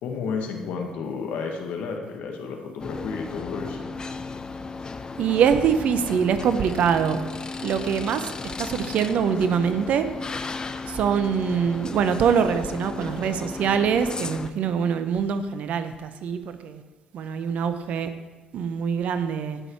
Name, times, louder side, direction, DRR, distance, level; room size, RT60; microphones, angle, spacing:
voice 1, 0.0-3.9, left 5 dB, 70° left, 2 dB, 1.7 m, -32 dB
sound 1, 2.8-14.5, left 4 dB, 30° left, 0.7 m, -35 dB
voice 2, 5.2-7.2 7.6-10.1 10.3-10.4 10.9-16.8 17.1-18.1 18.5-19.6, right 7 dB, 60° right, 10 dB, 0.9 m, -24 dB
17.0 x 6.5 x 4.6 m, 1.2 s
hypercardioid pair, 50°, 3 cm